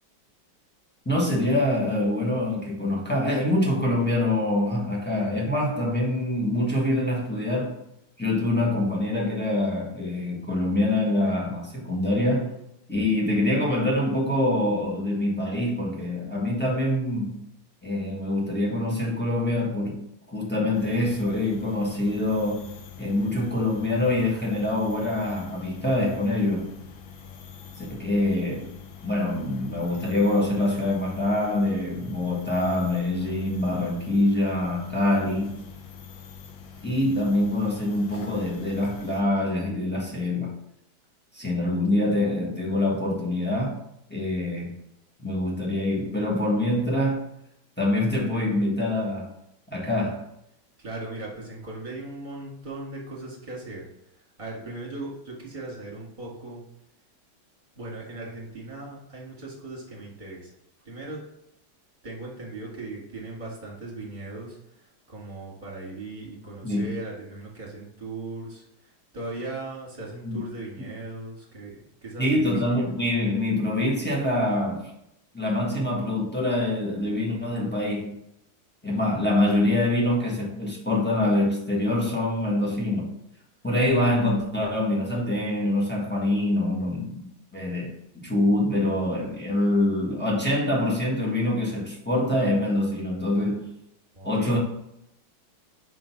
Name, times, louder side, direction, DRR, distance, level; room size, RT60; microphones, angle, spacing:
voice 1, 1.0-7.8 8.2-12.6 12.9-17.4 17.8-20.0 20.3-22.7 23.0-26.7 27.8-28.7 29.0-35.5 36.8-40.6 41.3-43.8 44.1-44.8 45.2-47.2 47.8-49.3 49.7-50.2 66.6-66.8 70.2-70.4 72.2-74.8 75.3-78.1 78.8-83.1 83.6-87.2 87.5-93.7 94.2-94.6, left 1 dB, 5° left, -4 dB, 1.1 m, -25 dB
sound 1, 20.7-39.2, left 6 dB, 85° left, 1.6 m, -45 dB
voice 2, 50.8-53.9 54.1-56.6 57.7-60.5 60.9-61.2 62.0-71.8 72.0-72.5 94.2-94.5, right 2 dB, 25° right, -5 dB, 2.0 m, -38 dB
5.1 x 3.8 x 5.8 m, 0.80 s
omnidirectional pair, 2.1 m